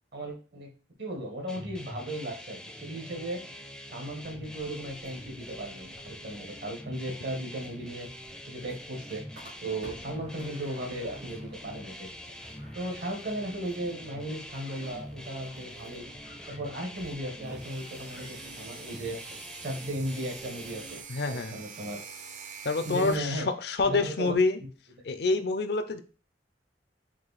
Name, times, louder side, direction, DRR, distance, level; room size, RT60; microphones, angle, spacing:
voice 1, 0.1-0.7 1.0-3.4 3.9-8.1 8.5-9.2 9.6-12.1 12.7-16.1 16.5-19.2 19.6-21.0 21.3-22.0 22.8-23.5 23.8-24.3, right 1 dB, 70° right, 2 dB, 1.3 m, -36 dB
sound 1, 1.5-21.0, left 1 dB, 5° left, 0.4 m, -45 dB
sound 2, 4.2-21.0, equal, 85° right, 2.3 m, -54 dB
sound 3, 17.4-23.2, right 6 dB, 45° right, 0.5 m, -46 dB
voice 2, 21.1-21.6 22.6-24.6 25.0-26.0, left 3 dB, 65° left, 9 dB, 0.5 m, -27 dB
4.6 x 2.6 x 4.0 m, 0.37 s
head